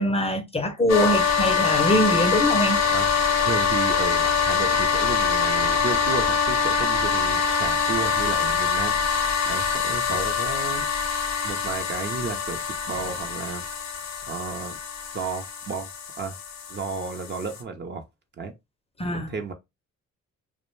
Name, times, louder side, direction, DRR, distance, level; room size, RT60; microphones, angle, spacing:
voice 1, 0.0-2.8 19.0-19.3, equal, 20° left, 0.5 m, -23 dB
sound 1, 0.9-17.6, left 6 dB, 65° left, 0.7 m, -24 dB
voice 2, 3.4-10.9 11.4-13.6 14.3-14.7 15.1-15.9 16.2-16.4 16.7-18.0 18.4-18.5 19.1-19.5, right 4 dB, 35° right, 0.5 m, -33 dB
2.4 x 2.1 x 3.0 m
cardioid pair, 90°, 30 cm